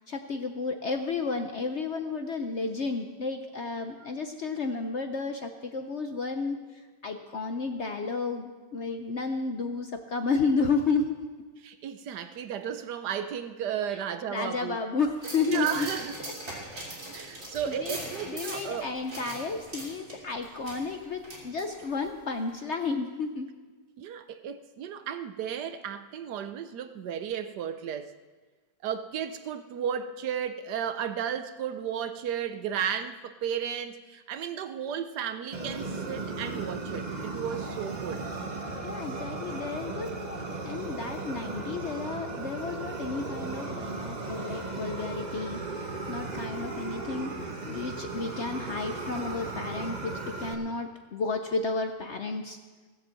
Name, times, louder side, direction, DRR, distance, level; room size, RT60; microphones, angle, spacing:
voice 1, 0.1-6.6 7.0-11.2 13.9-14.0 14.3-15.9 17.4-23.5 38.8-52.6, left 4 dB, 55° left, 6 dB, 0.8 m, -32 dB
voice 2, 11.6-14.8 15.5-16.1 17.1-18.9 24.0-28.1 28.8-38.3, right 8 dB, 70° right, 10 dB, 1.2 m, -34 dB
sound 1, 15.2-22.1 22.5-22.6, right 1 dB, 45° right, 3.5 m, -41 dB
Fire, 35.5-50.5, right 3 dB, 30° right, 1.1 m, -36 dB
16.5 x 7.3 x 7.6 m, 1.3 s
omnidirectional pair, 1.9 m